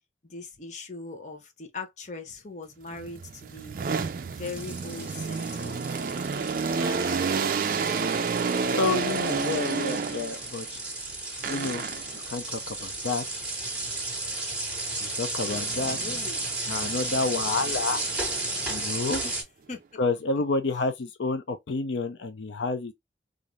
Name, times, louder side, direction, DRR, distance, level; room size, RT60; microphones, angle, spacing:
voice 1, 0.3-3.8 4.3-5.8 15.4-16.5 19.2-19.4 19.7-19.8, left 3 dB, 40° left, 0.7 m, -40 dB
sound 1, 2.9-10.5 11.4-12.2 15.4-16.2 16.7-19.1, right 5 dB, 50° right, 0.4 m, -31 dB
sound 2, 4.4-19.4, right 2 dB, 5° right, 1.1 m, -34 dB
Piano, 6.8-11.3 12.3-13.1, right 4 dB, 25° right, 0.7 m, -43 dB
voice 2, 8.8-10.8 11.5-11.9 12.1-13.2 15.0-16.0 16.7-18.0 18.7-19.2 20.0-22.9, left 3 dB, 90° left, 0.5 m, -29 dB
2.5 x 2.5 x 3.0 m
head